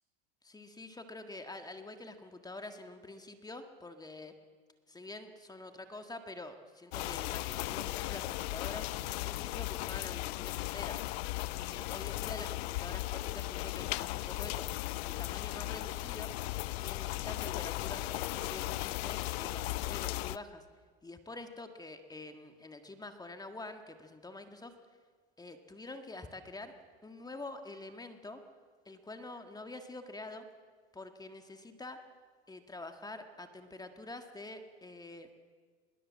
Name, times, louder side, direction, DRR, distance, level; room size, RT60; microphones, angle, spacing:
voice 1, 0.4-4.3 4.9-11.0 11.6-16.5 16.8-20.6 21.0-24.7 25.4-26.7 27.0-28.4 28.8-30.4 30.9-32.0 32.5-35.3, left 2 dB, 10° left, 6 dB, 1.7 m, -47 dB
sound 1, 6.9-20.4, left 18 dB, 75° left, 0.7 m, -37 dB
23.0 x 22.0 x 7.5 m, 1.6 s
supercardioid pair, 110°, 32 cm